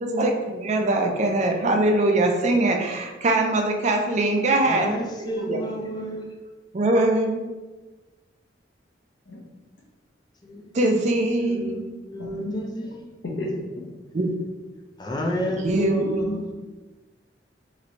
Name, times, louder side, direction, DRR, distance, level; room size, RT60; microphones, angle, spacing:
voice 1, 0.0-4.9 5.3-5.6 6.7-7.4 10.7-11.9 12.4-12.5 14.1-14.3 15.6-16.4, right 2 dB, 40° right, 2 dB, 0.4 m, -22 dB
voice 2, 4.6-6.3 10.4-11.0 11.4-13.2 15.0-16.4, equal, 25° left, 0 dB, 0.4 m, -31 dB
voice 3, 12.3-12.6 13.4-13.6 16.3-16.5, left 1 dB, 75° left, -2 dB, 0.8 m, -30 dB
3.1 x 3.1 x 2.6 m, 1.2 s
head